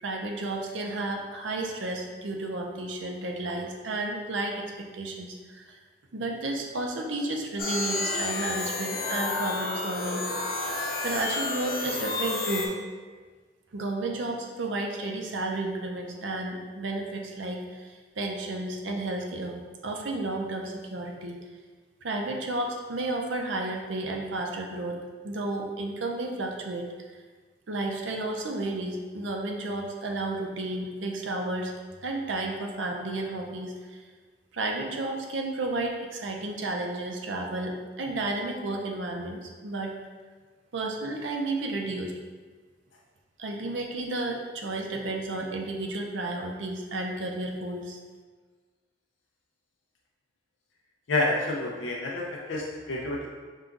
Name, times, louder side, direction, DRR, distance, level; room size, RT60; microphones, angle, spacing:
voice 1, 0.0-5.8 6.1-12.7 13.7-19.6 19.8-21.3 22.0-26.9 27.7-31.7 32.0-34.0 34.5-39.9 40.7-42.1 43.4-48.0, right 2 dB, 75° right, 1 dB, 0.6 m, -32 dB
sound 1, 7.6-12.7, left 3 dB, 50° left, 0.9 m, -30 dB
voice 2, 51.1-53.3, left 2 dB, 75° left, -2 dB, 0.5 m, -29 dB
5.5 x 2.3 x 3.8 m, 1.5 s
head